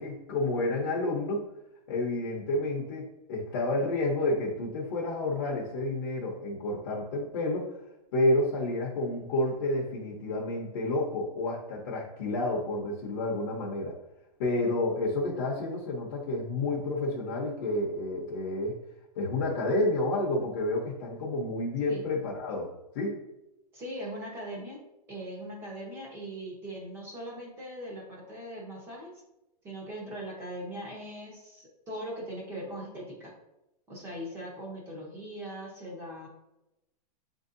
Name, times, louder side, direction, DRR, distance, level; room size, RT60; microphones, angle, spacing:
voice 1, 0.0-1.4 1.9-7.7 8.1-13.9 14.4-18.8 19.2-23.2, left 2 dB, 40° left, -2 dB, 0.8 m, -30 dB
voice 2, 23.7-24.8 25.1-29.2 29.6-33.3 33.9-36.3, right 1 dB, 10° right, -2 dB, 0.8 m, -40 dB
7.8 x 2.7 x 2.5 m, 0.92 s
supercardioid pair, 175°, 21 cm